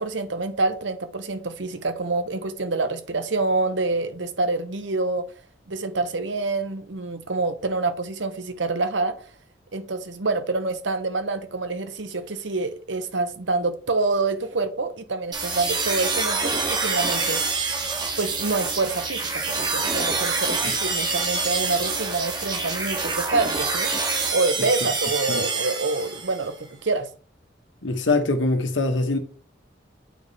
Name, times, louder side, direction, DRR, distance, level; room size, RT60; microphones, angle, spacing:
voice 1, 0.0-5.2 5.7-9.1 9.7-17.4 18.2-24.0 24.3-27.1, right 3 dB, 75° right, 1.0 m, -27 dB
sound 1, 15.3-26.5, right 4 dB, 20° right, 1.1 m, -26 dB
voice 2, 27.8-29.2, left 2 dB, 80° left, 1.2 m, -23 dB
8.7 x 3.5 x 4.2 m
head